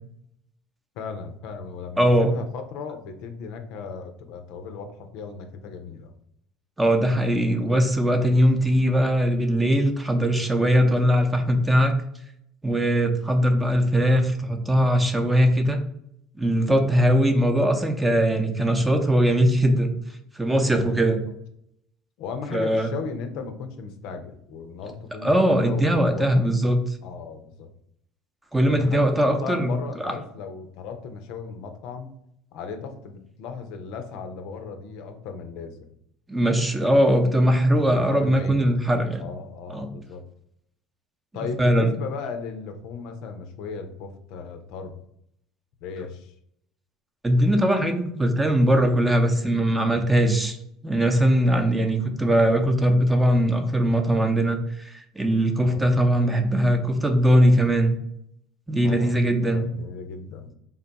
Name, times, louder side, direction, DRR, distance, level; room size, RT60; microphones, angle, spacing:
voice 1, 1.0-6.1 20.5-21.1 22.2-26.5 27.0-27.7 28.7-32.1 32.5-35.9 37.8-38.7 39.2-40.2 41.3-44.9 45.8-46.3 55.6-56.0 58.7-59.2 59.5-60.5, left 5 dB, 70° left, 6 dB, 0.5 m, -36 dB
voice 2, 2.0-2.3 6.8-11.9 12.6-15.8 16.4-19.9 20.3-21.2 22.5-22.9 25.2-26.8 28.5-29.8 30.0-30.1 36.3-39.3 39.7-39.9 41.6-41.9 47.2-50.6 50.8-58.0 58.7-59.7, equal, 10° right, 5 dB, 0.6 m, -20 dB
3.5 x 2.2 x 3.9 m, 0.73 s
supercardioid pair, 85°, 0 cm